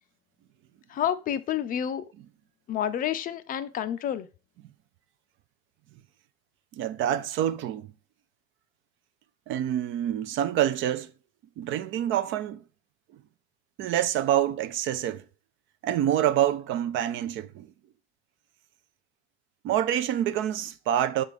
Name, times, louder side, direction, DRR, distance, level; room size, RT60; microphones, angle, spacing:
voice 1, 0.9-2.1 2.7-4.3, left 10 dB, 25° left, 0.5 m, -29 dB
voice 2, 6.7-7.9 9.5-11.1 11.6-12.6 13.8-15.2 15.8-17.7 19.6-21.2, right 11 dB, 40° right, 0.5 m, -26 dB
6.7 x 3.4 x 4.9 m
figure-of-eight pair, 70°, 33 cm